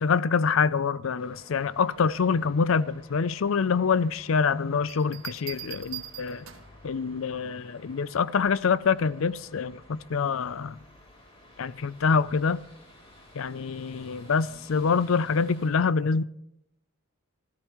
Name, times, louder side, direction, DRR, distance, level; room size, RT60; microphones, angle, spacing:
voice 1, 0.0-6.5 6.8-10.8 11.6-12.6 13.3-16.2, left 5 dB, 70° left, 0.5 m, -25 dB
sound 1, 1.2-15.7, left 1 dB, 30° left, 3.8 m, -53 dB
sound 2, 4.9-6.8 8.4-8.8, right 15 dB, 75° right, 1.9 m, -41 dB
28.0 x 13.5 x 3.1 m
head